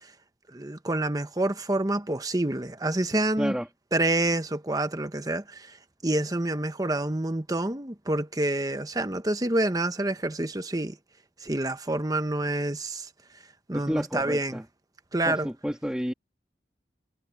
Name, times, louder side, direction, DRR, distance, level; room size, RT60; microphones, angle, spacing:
voice 1, 0.5-3.6 3.9-5.8 6.0-11.0 11.4-13.1 13.7-14.6 15.1-15.5, right 1 dB, 20° right, 1.0 m, -27 dB
voice 2, 13.7-14.6 15.3-16.1, equal, 5° right, 2.4 m, -30 dB
head